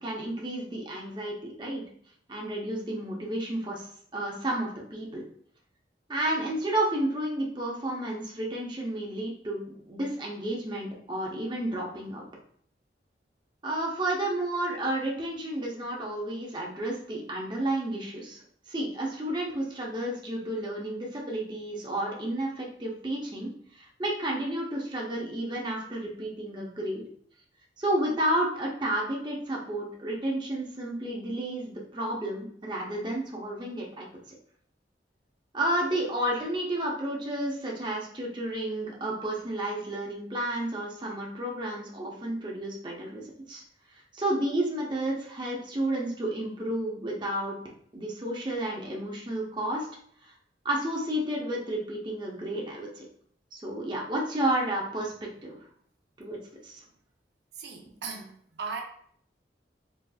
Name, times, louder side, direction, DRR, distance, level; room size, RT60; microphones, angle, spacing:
voice 1, 0.0-1.8 2.3-5.2 6.1-12.2 13.6-18.4 18.7-27.0 27.8-34.1 35.5-43.6 43.9-47.6 47.9-49.9 50.2-50.3 50.6-53.0 53.5-55.6 56.2-56.4 56.6-56.8, right 1 dB, 25° right, -3 dB, 0.7 m, -31 dB
voice 2, 57.6-58.8, right 5 dB, 75° right, 1 dB, 0.6 m, -38 dB
4.0 x 3.2 x 2.3 m, 0.62 s
head